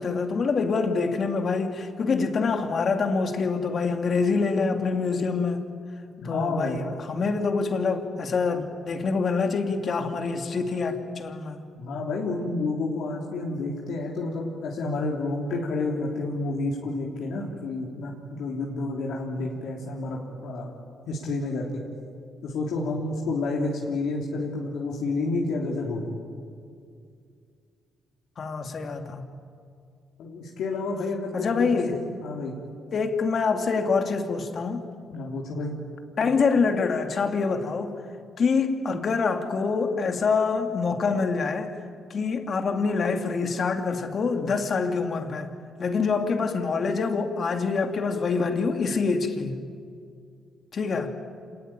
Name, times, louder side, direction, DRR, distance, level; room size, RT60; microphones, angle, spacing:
voice 1, 0.0-5.6 6.2-11.6 28.4-29.3 31.3-32.0 32.9-34.9 36.2-37.9 38.4-41.8 42.1-45.5 45.8-49.6 50.7-51.1, left 4 dB, 50° left, 5 dB, 2.7 m, -25 dB
voice 2, 6.2-6.8 11.8-20.7 21.1-21.8 22.4-26.1 30.2-32.5 35.1-35.7, left 3 dB, 75° left, -2 dB, 3.5 m, -30 dB
27.0 x 20.0 x 9.0 m, 2.3 s
cardioid pair, 90°, 0 cm